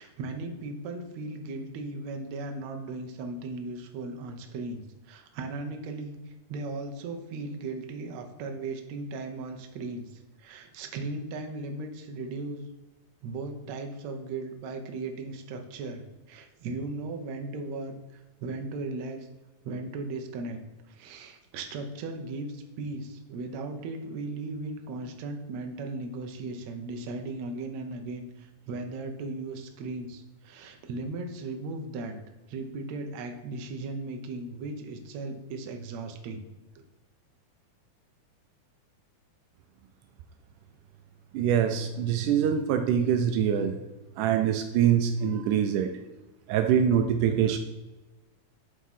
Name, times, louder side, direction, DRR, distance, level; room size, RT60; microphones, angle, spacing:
voice 1, 0.0-12.6 13.2-19.3 19.6-20.6 20.9-32.2 32.5-36.4 36.8-36.9, right 3 dB, 65° right, 4 dB, 2.1 m, -37 dB
voice 2, 41.3-43.8 44.2-45.9 46.5-47.6, right 8 dB, 85° right, 6 dB, 2.1 m, -24 dB
11.5 x 3.8 x 5.5 m, 1.1 s
omnidirectional pair, 3.6 m